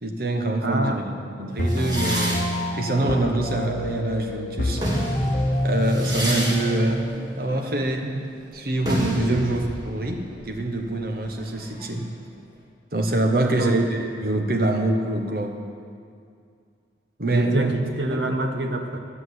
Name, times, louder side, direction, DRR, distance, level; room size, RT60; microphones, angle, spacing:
voice 1, 0.0-1.0 1.4-2.4 2.7-4.8 5.6-7.1 7.4-8.1 8.5-12.1 12.9-15.6 17.2-17.7 18.1-18.3, right 2 dB, 50° right, 3 dB, 1.2 m, -25 dB
voice 2, 0.6-1.0 8.0-8.2 9.3-9.4 13.4-13.9 17.3-19.0, right 2 dB, 70° right, 5 dB, 1.1 m, -26 dB
sound 1, 1.6-7.6, left 1 dB, 45° left, 1.0 m, -27 dB
sound 2, 1.7-4.1 4.6-12.1, right 1 dB, 20° right, 1.9 m, -31 dB
10.5 x 7.8 x 8.0 m, 2.3 s
head